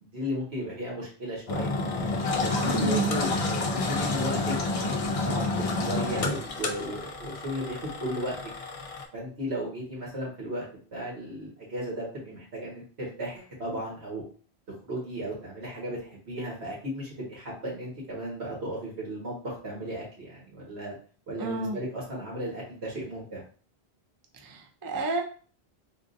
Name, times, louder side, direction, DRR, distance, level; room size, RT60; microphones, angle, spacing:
voice 1, 0.0-1.7 2.4-4.4 4.8-8.4 9.1-10.7 10.9-14.2 14.8-20.9 21.3-23.4, equal, 80° right, -5 dB, 1.8 m, -35 dB
Engine, 1.5-9.0, left 3 dB, 55° left, 0.4 m, -29 dB
voice 2, 2.7-3.1 21.4-21.8 24.4-25.2, right 2 dB, 35° right, 2 dB, 0.4 m, -30 dB
3.7 x 2.5 x 2.6 m, 0.41 s
omnidirectional pair, 1.1 m